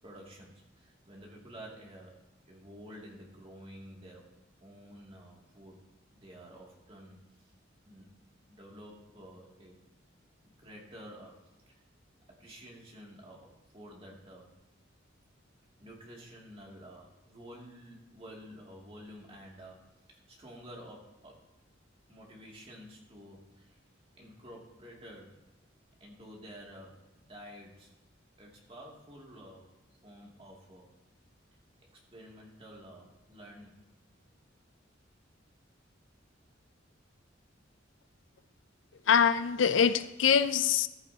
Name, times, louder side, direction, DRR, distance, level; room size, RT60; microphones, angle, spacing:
voice 1, 0.0-4.3 4.6-5.8 6.1-7.5 7.8-8.1 8.5-9.8 10.4-11.7 12.3-14.6 15.8-21.4 22.1-23.8 24.1-25.4 26.0-27.9 28.4-29.7 30.0-30.9 31.9-33.8, equal, 30° right, 2.5 m, -51 dB
voice 2, 39.1-40.9, left 7 dB, 75° left, 0.5 m, -24 dB
14.5 x 13.5 x 2.8 m
head